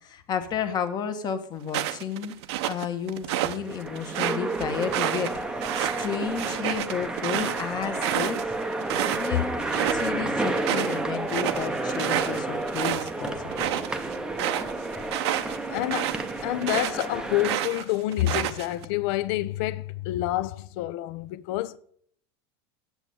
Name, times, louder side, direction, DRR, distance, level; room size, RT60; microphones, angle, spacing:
voice 1, 0.0-2.3 2.7-8.5 9.1-13.8, left 7 dB, 30° left, 1.2 m, -32 dB
sound 1, 1.7-3.6 4.0-9.3 9.6-10.1 10.4-17.1 17.4-18.8, right 13 dB, 75° right, 0.7 m, -29 dB
sound 2, 3.2-17.6, right 2 dB, 5° right, 0.7 m, -31 dB
voice 2, 15.4-21.8, left 15 dB, 60° left, 0.6 m, -28 dB
8.1 x 7.6 x 6.8 m
supercardioid pair, 140°, 14 cm